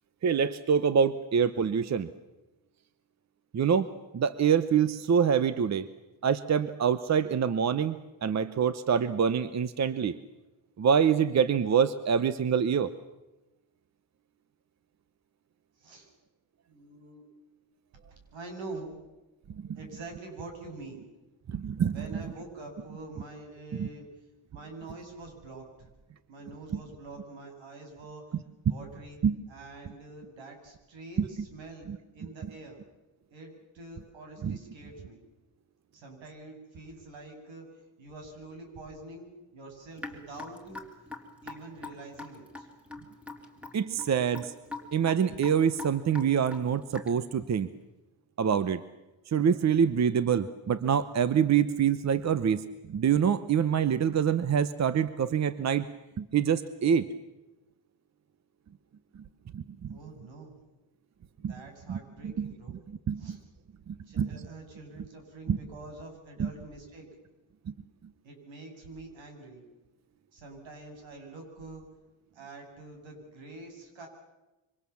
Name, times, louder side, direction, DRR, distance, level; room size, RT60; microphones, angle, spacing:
voice 1, 0.2-2.1 3.5-5.9 6.2-10.2 10.8-12.9 21.5-21.9 23.8-23.9 29.2-29.4 31.9-32.0 34.4-34.6 43.7-44.5 44.9-47.7 48.4-48.8 49.3-55.9 56.2-57.1 59.5-60.0 61.4-61.5 61.9-62.5 63.1-63.4 63.9-64.3 65.5-65.6 66.4-66.5, right 7 dB, 35° right, 14 dB, 0.9 m, -26 dB
voice 2, 15.8-16.1 16.7-17.2 18.1-18.9 19.7-21.1 21.9-24.1 24.5-25.9 26.3-28.2 28.6-29.2 29.5-31.9 32.1-32.8 33.3-35.2 35.9-37.6 38.0-39.3 39.5-40.8 41.4-42.7 59.9-60.5 61.4-62.7 63.2-63.4 64.1-67.1 68.2-69.6 70.3-71.9 72.3-74.1, right 2 dB, 70° right, 3 dB, 7.8 m, -45 dB
Raindrop / Drip, 40.0-47.3, left 3 dB, ahead, 3.2 m, -43 dB
27.0 x 25.0 x 7.1 m, 1.0 s
cardioid pair, 135°, 47 cm